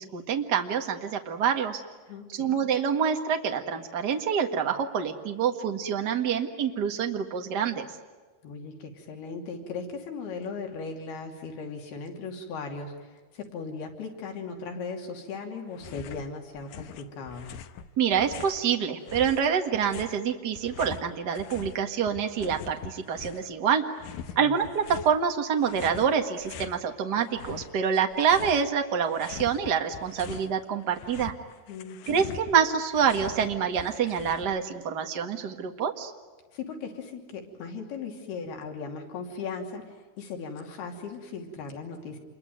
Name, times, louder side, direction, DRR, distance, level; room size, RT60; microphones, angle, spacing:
voice 1, 0.0-1.8 2.3-7.9 18.0-23.9 24.3-31.3 32.1-36.1, right 7 dB, 40° right, 5 dB, 1.5 m, -26 dB
voice 2, 2.1-2.8 8.4-17.5 24.3-24.7 31.7-32.3 36.5-42.2, left 4 dB, 85° left, 2 dB, 4.9 m, -38 dB
sound 1, 15.7-16.3 16.5-18.6 19.1-21.8 22.0-23.5 24.0-25.1 25.6-26.8 27.2-28.7 29.0-30.5 30.8-34.7, left 8 dB, 70° left, 2.6 m, -43 dB
28.0 x 23.0 x 9.3 m, 1.4 s
omnidirectional pair, 4.4 m